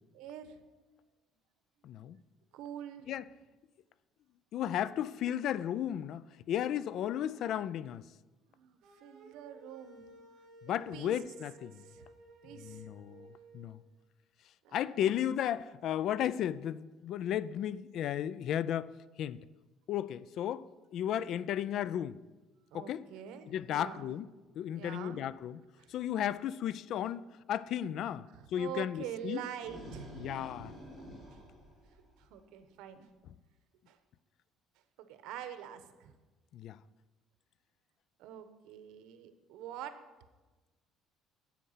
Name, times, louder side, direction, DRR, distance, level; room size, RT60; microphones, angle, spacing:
voice 1, 0.1-0.6 2.5-3.2 8.5-10.0 10.9-11.2 11.7-12.1 12.4-12.9 14.6-15.1 22.7-24.2 24.7-25.2 25.8-25.9 28.2-30.2 31.3-31.4 32.2-33.1 33.9-34.0 35.0-36.1 38.2-40.0, right 10 dB, 80° right, 1.0 m, -45 dB
voice 2, 1.8-2.2 3.1-3.2 4.5-8.0 10.7-11.7 12.6-13.3 13.5-13.8 14.7-18.9 19.2-19.4 19.9-20.6 20.9-22.2 22.7-23.0 23.5-24.3 24.6-25.6 25.9-27.2 27.5-28.3 28.5-29.4 30.2-30.7 36.5-36.8, left 10 dB, 55° left, 0.3 m, -34 dB
sound 1, 8.8-13.7, right 3 dB, 55° right, 2.3 m, -55 dB
sound 2, 29.3-32.5, equal, 15° left, 3.8 m, -49 dB
9.9 x 8.6 x 5.7 m
cardioid pair, 155°, 0 cm